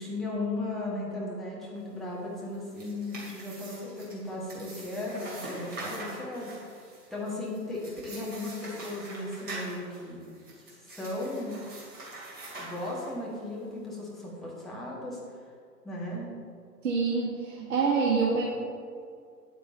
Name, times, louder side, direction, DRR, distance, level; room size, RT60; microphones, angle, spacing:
voice 1, 0.0-10.2 10.5-11.5 12.5-15.2 15.8-16.3, left 2 dB, ahead, -7 dB, 1.6 m, -36 dB
sound 1, 2.5-13.4, right 2 dB, 20° right, 2.5 m, -44 dB
voice 2, 16.8-18.4, right 5 dB, 50° right, -6 dB, 1.8 m, -26 dB
9.3 x 8.8 x 3.9 m, 2.2 s
figure-of-eight pair, 115°, 50 cm